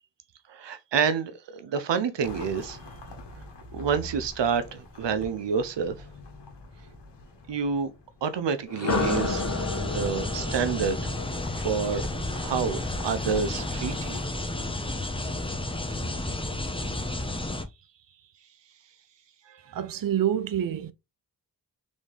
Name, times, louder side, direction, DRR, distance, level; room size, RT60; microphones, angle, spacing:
voice 1, 0.5-2.8 3.7-6.0 7.5-7.9 8.2-9.4 9.8-11.0 11.6-12.0 12.4-12.8 13.0-14.2 19.5-19.8, right 6 dB, 85° right, 0.8 m, -28 dB
sound 1, 2.2-8.7 9.8-14.3, left 2 dB, 80° left, 1.3 m, -45 dB
sound 2, 8.7-12.6, left 3 dB, 35° left, 1.3 m, -32 dB
sound 3, 8.9-17.6, left 2 dB, 15° left, 0.9 m, -32 dB
voice 2, 19.7-20.9, right 10 dB, 55° right, 0.6 m, -27 dB
4.1 x 3.6 x 3.3 m
cardioid pair, 50°, 41 cm